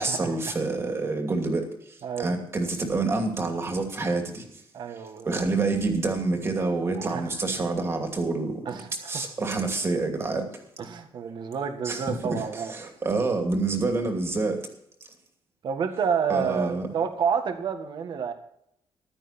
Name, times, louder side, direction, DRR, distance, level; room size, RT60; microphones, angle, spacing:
voice 1, 0.0-1.6 2.2-4.4 5.2-8.5 9.1-10.5 11.8-14.7 16.3-16.9, right 3 dB, 30° right, 4 dB, 2.7 m, -27 dB
voice 2, 2.0-2.3 4.7-5.4 6.9-7.2 8.7-9.1 10.8-12.7 15.6-18.3, right 7 dB, 55° right, 6 dB, 1.8 m, -29 dB
15.0 x 12.0 x 4.4 m, 0.75 s
wide cardioid pair, 170°, 9 cm